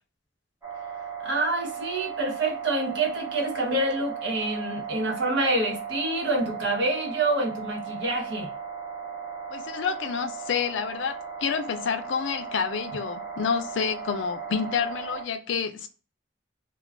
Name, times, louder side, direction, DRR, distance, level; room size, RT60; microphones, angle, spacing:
sound 1, 0.6-15.2, right 6 dB, 15° right, 0.7 m, -36 dB
voice 1, 1.2-8.5, right 2 dB, 70° right, 1.0 m, -27 dB
voice 2, 9.5-15.9, left 6 dB, 85° left, 0.4 m, -29 dB
2.4 x 2.2 x 3.3 m
head